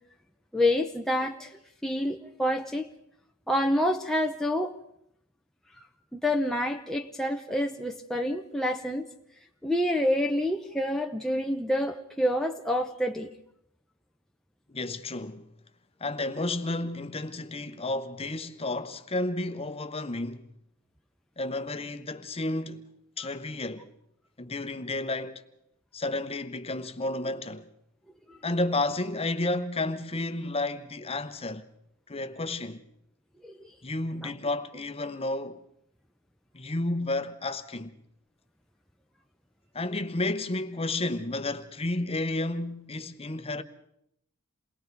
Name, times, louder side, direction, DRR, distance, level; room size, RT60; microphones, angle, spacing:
voice 1, 0.5-2.9 3.5-4.7 5.7-5.8 6.1-9.1 9.6-13.3 28.3-28.4 33.4-33.7, left 1 dB, ahead, 0.7 m, -28 dB
voice 2, 14.7-15.5 16.0-20.4 21.4-22.9 23.2-23.9 24.4-25.4 25.9-27.7 28.4-31.7 32.1-32.8 33.8-35.6 36.5-38.0 39.7-43.6, left 2 dB, 25° left, 1.0 m, -31 dB
28.5 x 20.0 x 4.7 m
head